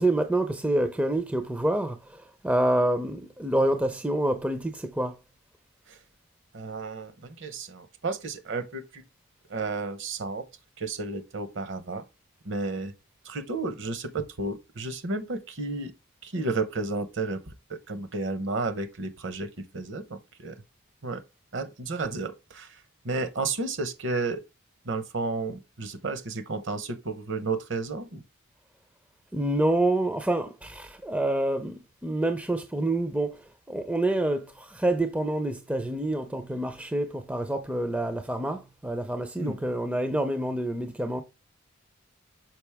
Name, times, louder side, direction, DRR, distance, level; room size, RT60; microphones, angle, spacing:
voice 1, 0.0-5.2 29.3-33.4 33.7-41.2, right 1 dB, 5° right, 0.5 m, -27 dB
voice 2, 6.5-9.0 9.5-10.4 10.8-12.0 12.4-12.9 13.2-15.9 16.2-17.4 17.7-20.6 21.0-21.2 21.5-22.8 23.0-24.4 24.8-28.2 39.4-39.6, right 3 dB, 55° right, 0.9 m, -32 dB
6.0 x 5.1 x 3.4 m
head